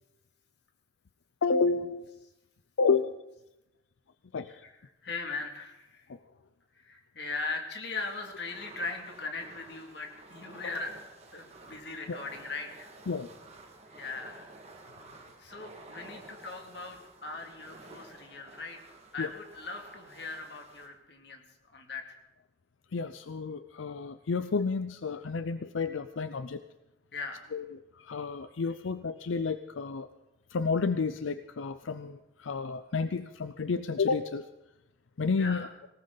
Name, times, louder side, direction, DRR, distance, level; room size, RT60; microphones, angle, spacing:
voice 1, 1.4-2.2 2.8-3.1 4.3-4.5 12.1-12.2 13.1-13.3 19.2-19.3 22.9-26.6 27.5-27.6 28.0-30.1 30.5-34.4 35.2-35.7, left 4 dB, 90° left, 12 dB, 0.5 m, -30 dB
voice 2, 4.5-6.1 6.7-11.0 11.3-12.9 13.9-14.5 15.2-18.8 19.1-21.4 21.7-22.2 27.1-27.5 35.4-35.7, left 3 dB, 60° left, 3 dB, 2.4 m, -39 dB
sound 1, 8.0-20.9, right 2 dB, 35° right, 1.9 m, -52 dB
19.5 x 18.0 x 4.0 m, 0.94 s
head